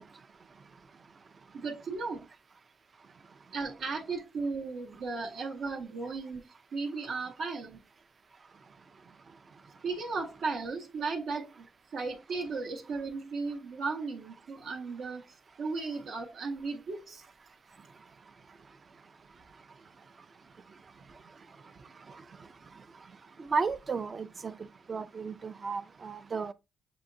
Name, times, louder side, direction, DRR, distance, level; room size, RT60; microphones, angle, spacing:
voice 1, 1.5-2.3 3.5-7.8 9.8-11.6 11.9-15.2 15.6-17.2, right 4 dB, 65° right, 0.8 m, -35 dB
voice 2, 23.5-24.5 24.9-26.5, right 5 dB, 40° right, 0.5 m, -33 dB
6.8 x 2.8 x 2.6 m
cardioid pair, 90°, 0 cm